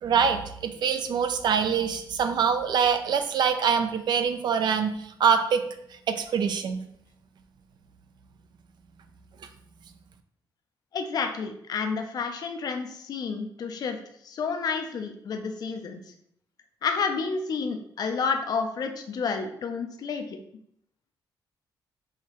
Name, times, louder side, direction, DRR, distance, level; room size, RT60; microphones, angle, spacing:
voice 1, 0.0-5.6 6.1-6.8, right 6 dB, 60° right, 8 dB, 0.5 m, -24 dB
voice 2, 10.9-14.0 14.2-16.0 16.8-20.4, left 5 dB, 50° left, 5 dB, 0.4 m, -30 dB
4.8 x 2.7 x 3.0 m, 0.71 s
cardioid pair, 125°, 8 cm